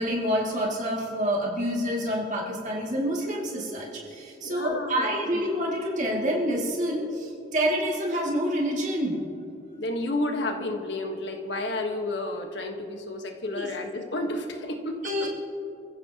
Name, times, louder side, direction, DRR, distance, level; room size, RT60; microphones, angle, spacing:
voice 1, 0.0-9.2 13.5-13.7 15.0-15.3, equal, 40° right, -3 dB, 2.5 m, -27 dB
voice 2, 4.4-5.2 9.8-15.3, left 2 dB, 85° left, 4 dB, 1.4 m, -31 dB
29.0 x 15.0 x 3.0 m, 2.7 s
head